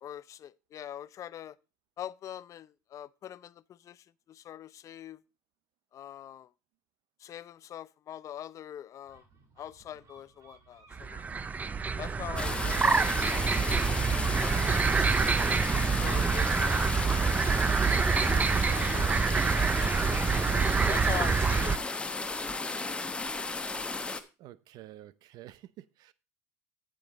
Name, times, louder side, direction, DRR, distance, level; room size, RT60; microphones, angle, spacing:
voice 1, 0.0-1.6 2.0-5.2 5.9-6.5 7.2-9.2 9.6-11.2 12.0-13.9 14.2-14.5 16.0-16.9 17.8-19.2 19.5-21.8, left 10 dB, 40° left, 0.5 m, -43 dB
Gull seagull, 9.0-16.6, right 4 dB, 45° right, 3.5 m, -59 dB
sound 1, 10.9-21.8, right 5 dB, 20° right, 0.5 m, -26 dB
sound 2, 12.4-24.2, left 3 dB, 15° left, 1.0 m, -35 dB
voice 2, 24.4-26.1, right 14 dB, 60° right, 0.7 m, -49 dB
8.8 x 8.1 x 4.1 m
supercardioid pair, 95°, 8 cm